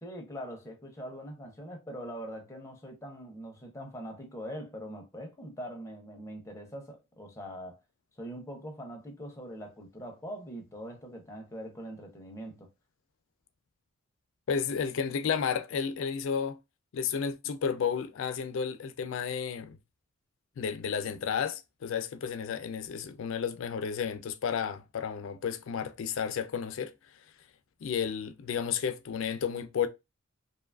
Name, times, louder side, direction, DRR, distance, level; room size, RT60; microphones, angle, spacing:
voice 1, 0.0-7.8 8.2-12.7, equal, 15° left, 0.5 m, -42 dB
voice 2, 14.5-16.6 16.9-19.8 20.6-26.9 27.8-29.9, left 7 dB, 65° left, 0.4 m, -32 dB
2.7 x 2.3 x 2.2 m
head